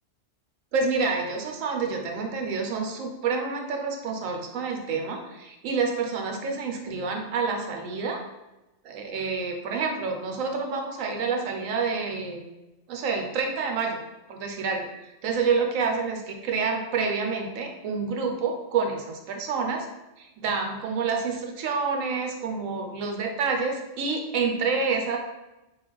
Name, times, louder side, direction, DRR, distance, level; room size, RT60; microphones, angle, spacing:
voice 1, 0.7-8.2 8.8-12.4 12.9-14.0 14.3-14.9 15.2-19.9 20.2-25.2, right 4 dB, 80° right, 3 dB, 1.1 m, -28 dB
3.7 x 3.1 x 3.4 m, 1.0 s
omnidirectional pair, 1.3 m